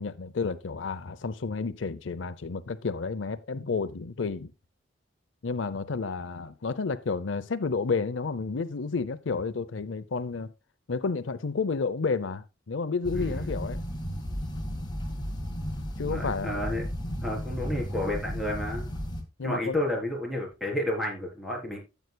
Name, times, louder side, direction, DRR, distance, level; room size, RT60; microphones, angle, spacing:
voice 1, 0.0-4.5 5.4-10.5 10.9-13.8 16.0-16.6 19.4-19.8, left 4 dB, 85° left, 0.6 m, -31 dB
sound 1, 13.0-19.2, equal, 25° left, 2.0 m, -34 dB
voice 2, 13.1-13.6 16.0-16.8 17.2-18.9 19.4-21.8, left 1 dB, ahead, 3.9 m, -31 dB
14.0 x 8.0 x 2.3 m
head